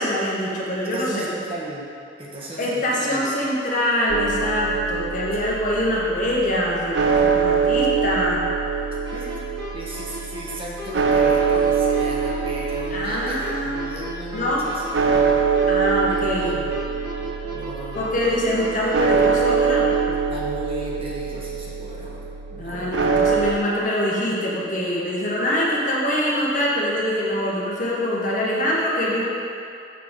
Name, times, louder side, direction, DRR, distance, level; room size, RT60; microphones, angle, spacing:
voice 1, 0.0-1.3 2.6-8.4 12.9-13.9 14.3-14.7 15.7-16.5 17.9-19.9 22.6-29.3, equal, 45° left, -5 dB, 1.2 m, -24 dB
voice 2, 0.8-1.9 2.2-3.3 9.1-9.4 9.7-15.4 16.1-18.4 20.1-23.3, equal, 30° right, -5 dB, 1.1 m, -37 dB
sound 1, 4.1-23.5, right 6 dB, 85° right, 0.5 m, -24 dB
sound 2, 9.1-20.0, equal, 60° right, 1.4 m, -36 dB
6.6 x 4.5 x 5.1 m, 2.6 s
head